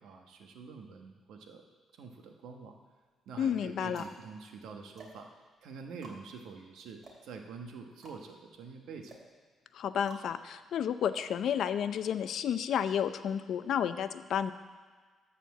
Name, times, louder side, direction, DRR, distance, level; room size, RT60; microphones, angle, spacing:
voice 1, 0.0-1.6 1.9-2.7 3.3-5.3 5.6-9.2, right 5 dB, 80° right, 4 dB, 1.2 m, -46 dB
sound 1, 2.1-2.7 3.4-12.1, right 2 dB, 50° right, 2.5 m, -54 dB
voice 2, 3.4-4.0 9.7-14.5, left 8 dB, 70° left, 12 dB, 0.5 m, -31 dB
12.5 x 4.3 x 7.5 m, 1.5 s
cardioid pair, 90°, 0 cm